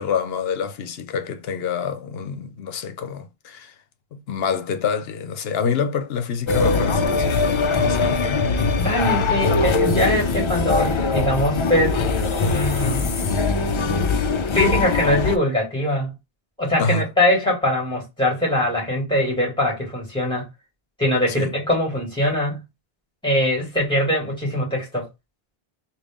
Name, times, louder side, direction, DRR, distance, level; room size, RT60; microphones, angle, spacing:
voice 1, 0.0-3.7 4.1-8.5 9.4-9.5 16.8-17.1 21.4-21.5, left 6 dB, 75° left, 0.9 m, -27 dB
sound 1, 6.5-15.4, left 4 dB, 55° left, 0.3 m, -21 dB
voice 2, 8.8-12.0 12.4-13.1 14.5-16.1 16.6-20.5 21.0-22.6 23.2-25.1, left 1 dB, 5° left, 2.2 m, -22 dB
3.7 x 2.4 x 3.5 m
omnidirectional pair, 1.0 m